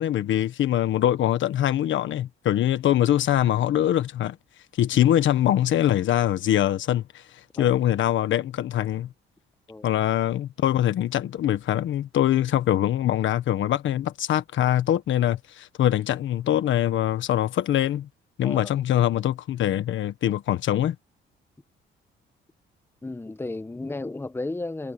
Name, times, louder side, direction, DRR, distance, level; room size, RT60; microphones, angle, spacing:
voice 1, 0.0-4.4 4.7-9.1 9.8-18.1 18.4-20.9, left 12 dB, 75° left, 1.4 m, -23 dB
voice 2, 23.0-24.9, left 2 dB, 10° left, 1.0 m, -34 dB
cardioid pair, 90°, 20 cm